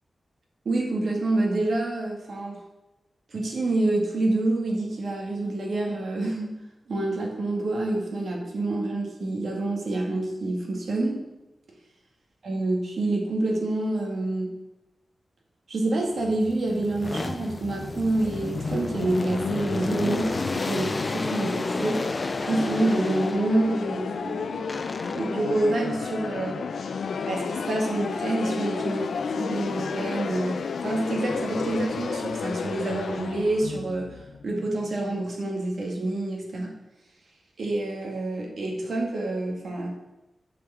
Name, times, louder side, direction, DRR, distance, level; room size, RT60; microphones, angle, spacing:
voice 1, 0.7-2.6 3.3-6.6 6.9-11.2 12.4-14.5 15.7-22.0 22.4-24.6 25.1-26.6 27.3-29.0 29.3-36.8 37.6-39.9, right 2 dB, 65° right, 0 dB, 2.0 m, -27 dB
sound 1, 16.2-23.8 24.7-25.5 28.7-29.5 29.9-32.3, left 2 dB, 25° left, 0.3 m, -34 dB
sound 2, 17.3-35.0, left 5 dB, 80° left, 0.5 m, -32 dB
8.0 x 5.2 x 6.9 m, 0.97 s
wide cardioid pair, 155°, 0 cm